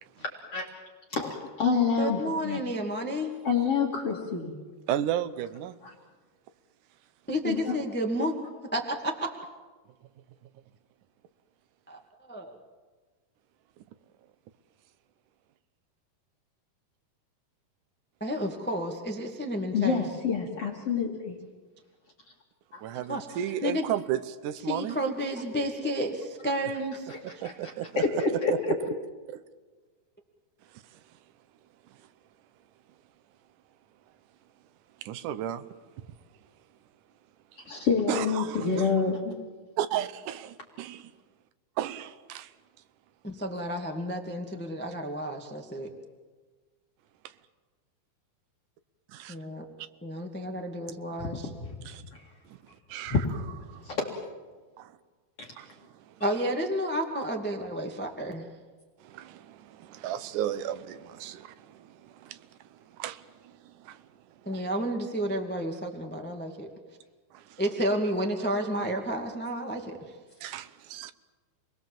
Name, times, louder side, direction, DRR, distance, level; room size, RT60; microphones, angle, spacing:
voice 1, 1.1-2.6 3.4-4.5 5.8-5.9 7.4-7.8 19.7-21.4 22.7-22.8 27.1-27.5 28.0-28.5 37.7-39.3 51.3-51.7 53.1-53.5 53.8-54.1 55.4-55.5, left 5 dB, 45° left, 2.8 m, -28 dB
voice 2, 2.0-3.3 7.3-8.3 8.7-9.3 11.9-12.0 12.3-12.6 18.2-20.0 23.1-23.3 23.6-23.8 24.7-27.1 43.2-45.9 49.3-49.6 50.0-51.5 56.2-58.5 64.4-66.7 67.6-70.0, equal, 10° left, 0.6 m, -31 dB
voice 3, 4.9-5.8 22.8-25.0 27.2-28.2 29.3-29.4 30.7-31.0 35.0-35.7 38.1-38.9 39.8-41.1 41.8-42.5 47.2-47.3 49.1-49.4 51.9-52.0 52.5-52.6 52.9-53.2 53.7-53.9 54.8-55.0 55.6-56.2 59.0-64.1 64.4-64.6 67.3-67.6 70.4-71.1, right 11 dB, 70° right, 2.0 m, -34 dB
29.0 x 21.0 x 7.4 m
omnidirectional pair, 4.4 m